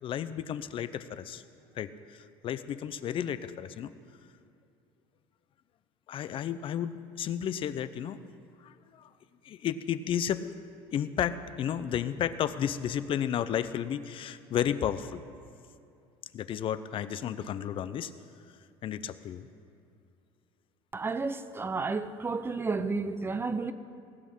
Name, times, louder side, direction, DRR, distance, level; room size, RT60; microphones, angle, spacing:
voice 1, 0.0-1.4 1.8-3.9 6.1-8.2 8.6-9.1 9.4-10.4 10.9-15.2 16.3-18.1 18.8-19.5, left 9 dB, 50° left, 0.6 m, -32 dB
voice 2, 20.9-23.7, right 4 dB, 20° right, 0.7 m, -31 dB
18.5 x 6.3 x 8.7 m
supercardioid pair, 95°, 12 cm